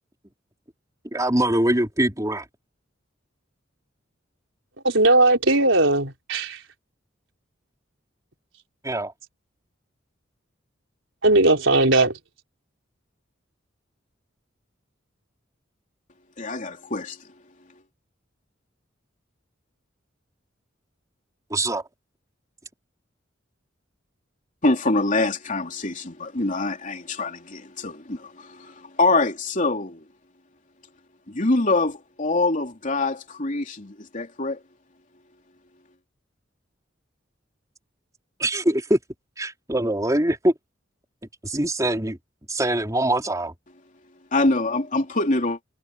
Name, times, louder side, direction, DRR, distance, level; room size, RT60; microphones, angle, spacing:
voice 1, 1.1-2.4 8.8-9.1 21.5-21.8 38.4-39.0 39.4-40.5 41.4-42.2 42.5-43.5, right 1 dB, 20° right, 4.1 m, -23 dB
voice 2, 4.8-6.6 11.2-12.1, right 2 dB, 80° right, 4.6 m, -18 dB
voice 3, 16.4-17.2 24.6-30.0 31.3-34.6 44.3-45.6, left 2 dB, 40° left, 3.2 m, -24 dB
head